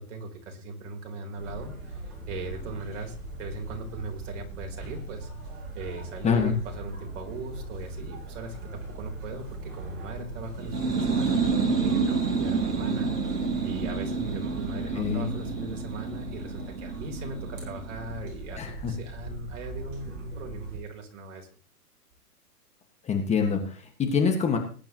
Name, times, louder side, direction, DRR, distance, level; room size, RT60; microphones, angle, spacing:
voice 1, 0.0-5.3 5.7-11.5 11.8-13.1 13.6-21.5, right 2 dB, 50° right, 2 dB, 4.0 m, -39 dB
sound 1, 1.4-20.8, right 2 dB, 35° right, 7.1 m, -40 dB
voice 2, 6.2-6.6 14.9-15.3 18.6-18.9 23.0-24.6, left 6 dB, 15° left, 4 dB, 1.7 m, -25 dB
sound 2, 10.6-18.1, right 4 dB, 80° right, 4.2 m, -29 dB
20.5 x 10.5 x 3.1 m, 0.40 s
hypercardioid pair, 135°, 47 cm